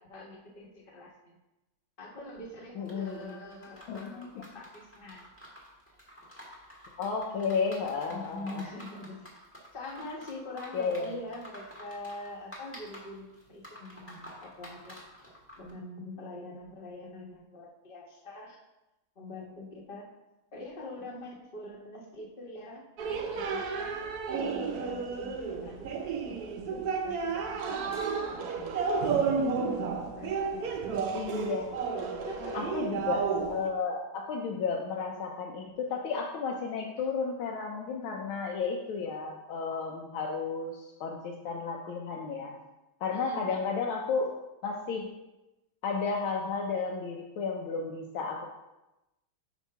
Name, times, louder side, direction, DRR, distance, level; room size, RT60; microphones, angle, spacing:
voice 1, 0.0-1.4 2.0-5.3 8.1-9.3 9.7-15.0 15.6-18.6 19.2-20.0 20.5-24.0 24.3-28.0 28.3-28.9 30.1-30.7 32.2-33.2 43.1-43.5, left 1 dB, 30° left, -2 dB, 1.0 m, -44 dB
voice 2, 2.8-3.4 3.9-4.4 7.0-8.6 10.7-11.2 31.1-31.8 32.5-42.5 43.0-44.3 44.6-45.1 45.8-48.5, left 5 dB, 75° left, -1 dB, 1.5 m, -33 dB
sound 1, 2.9-15.7, equal, 10° left, 1.0 m, -50 dB
sound 2, 23.0-33.7, right 5 dB, 75° right, 0.8 m, -32 dB
5.1 x 4.5 x 5.6 m, 0.98 s
omnidirectional pair, 2.4 m